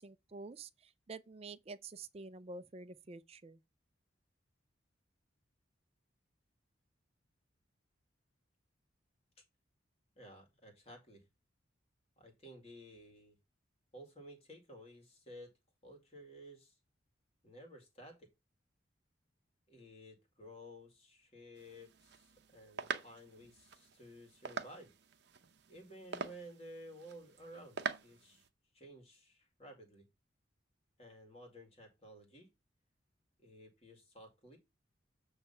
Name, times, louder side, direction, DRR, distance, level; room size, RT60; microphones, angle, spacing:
voice 1, 0.0-3.6, right 3 dB, 30° right, 0.4 m, -49 dB
voice 2, 10.2-11.2 12.2-13.4 13.9-15.5 15.8-16.8 17.4-18.3 19.7-24.9 25.7-28.4 28.7-30.1 31.0-32.5 33.4-34.6, equal, 30° left, 2.1 m, -54 dB
sound 1, 21.6-28.5, right 5 dB, 60° right, 0.8 m, -45 dB
8.1 x 3.3 x 5.5 m
head